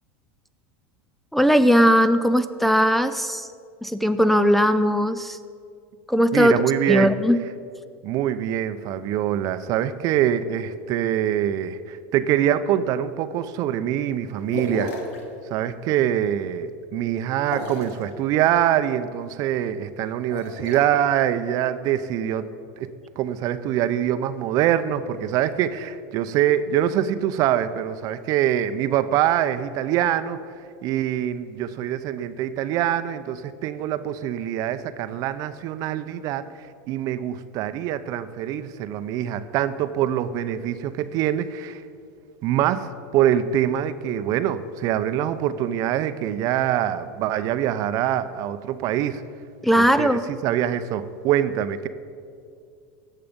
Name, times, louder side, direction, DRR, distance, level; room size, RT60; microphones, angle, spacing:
voice 1, 1.3-3.5 3.8-5.4 6.1-6.5 6.9-7.4 49.6-50.2, equal, ahead, 8 dB, 0.4 m, -18 dB
voice 2, 6.3-7.1 8.0-14.9 15.5-22.5 22.8-30.4 30.8-41.8 42.4-49.2 49.7-50.1 50.4-51.9, right 11 dB, 55° right, 12 dB, 0.7 m, -24 dB
sound 1, 14.5-15.2 17.4-18.0 20.2-20.8, left 2 dB, 80° left, 2.1 m, -32 dB
17.5 x 6.7 x 5.3 m, 2.3 s
supercardioid pair, 110°, 7 cm